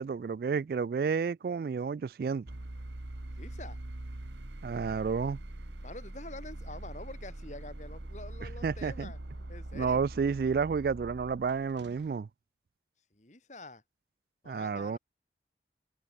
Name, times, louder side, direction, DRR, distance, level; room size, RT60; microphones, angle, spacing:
voice 1, 0.0-2.5 4.6-5.4 8.6-9.1 9.7-12.3 14.5-15.0, right 5 dB, 55° right, 0.3 m, -31 dB
sound 1, 2.5-12.2, right 1 dB, 90° right, 1.6 m, -43 dB
voice 2, 3.4-3.8 5.8-9.2 9.5-10.0 13.1-13.8 14.4-15.0, left 2 dB, 40° left, 2.3 m, -46 dB
head